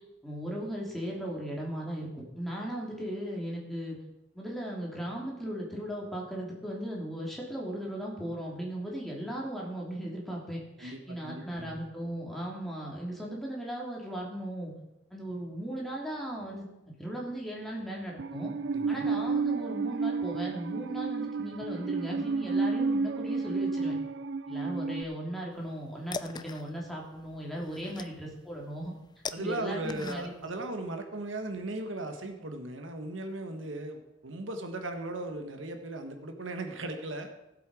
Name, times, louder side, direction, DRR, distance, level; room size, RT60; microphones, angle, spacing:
voice 1, 0.2-4.0 4.3-14.7 15.1-16.7 17.0-18.5 18.9-24.0 24.5-28.9 29.4-30.3, right 1 dB, ahead, -3 dB, 2.9 m, -37 dB
voice 2, 10.8-11.8 18.7-19.1 29.3-37.3, right 2 dB, 85° right, 6 dB, 1.5 m, -37 dB
Musical instrument, 18.2-25.0, right 4 dB, 65° right, 0.5 m, -31 dB
sound 1, 25.6-30.6, left 5 dB, 20° left, 0.4 m, -43 dB
16.5 x 7.8 x 4.9 m, 0.92 s
head